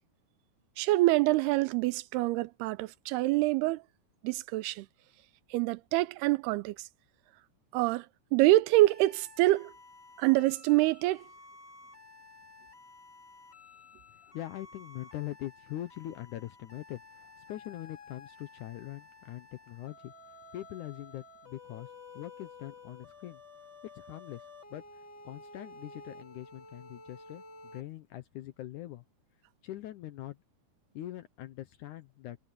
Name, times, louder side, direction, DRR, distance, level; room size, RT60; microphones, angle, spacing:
voice 1, 0.8-3.8 4.2-4.9 5.5-6.8 7.7-8.1 8.3-9.7 10.2-11.2, right 18 dB, 85° right, 2.6 m, -26 dB
sound 1, 8.8-27.8, left 3 dB, 25° left, 4.2 m, -52 dB
voice 2, 14.2-20.1 20.5-23.4 23.9-24.5 24.7-27.4 27.7-29.0 29.6-30.4 30.9-32.4, left 14 dB, 80° left, 1.8 m, -42 dB
omnidirectional pair, 4.6 m